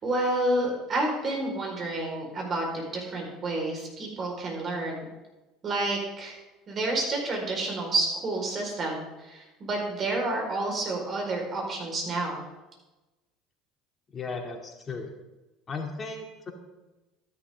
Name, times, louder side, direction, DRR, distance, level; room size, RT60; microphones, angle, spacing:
voice 1, 0.0-5.0 5.6-6.3 6.7-12.4, right 2 dB, 40° right, 0 dB, 4.8 m, -29 dB
voice 2, 14.1-15.1 15.7-16.5, left 4 dB, 35° left, 2 dB, 2.6 m, -36 dB
12.5 x 11.0 x 3.7 m, 1.1 s
hypercardioid pair, 70°, 0 cm